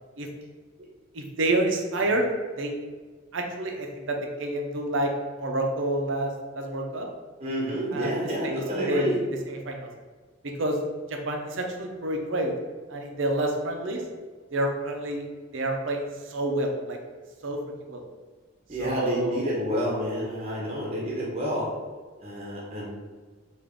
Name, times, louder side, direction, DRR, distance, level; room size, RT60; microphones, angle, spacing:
voice 1, 1.1-2.3 2.6-2.8 3.3-7.1 7.9-9.9 10.4-10.8 11.1-12.5 12.9-14.0 14.5-15.3 15.5-17.0 17.4-17.6 17.9-18.1 18.8-19.7, right 1 dB, 65° right, 2 dB, 0.6 m, -29 dB
voice 2, 7.4-9.2 18.7-21.7 22.2-22.9, equal, 30° right, -4 dB, 0.7 m, -29 dB
3.5 x 2.5 x 3.7 m, 1.5 s
head